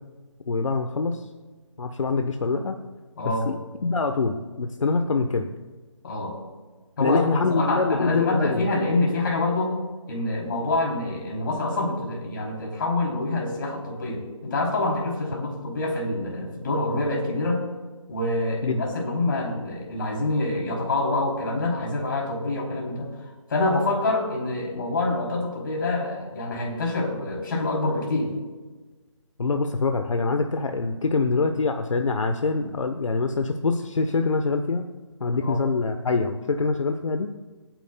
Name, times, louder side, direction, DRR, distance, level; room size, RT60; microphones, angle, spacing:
voice 1, 0.5-1.3 1.8-2.8 3.2-3.5 3.8-5.5 7.0-8.7 18.6-18.8 29.4-34.9 35.2-37.3, left 4 dB, 70° left, 6 dB, 0.9 m, -24 dB
voice 2, 3.2-3.5 6.0-6.4 7.0-9.8 10.1-17.6 18.1-23.2 23.5-28.3 35.4-35.6, left 2 dB, 40° left, -1 dB, 3.2 m, -26 dB
26.0 x 9.2 x 2.2 m, 1.3 s
hypercardioid pair, 165°, 17 cm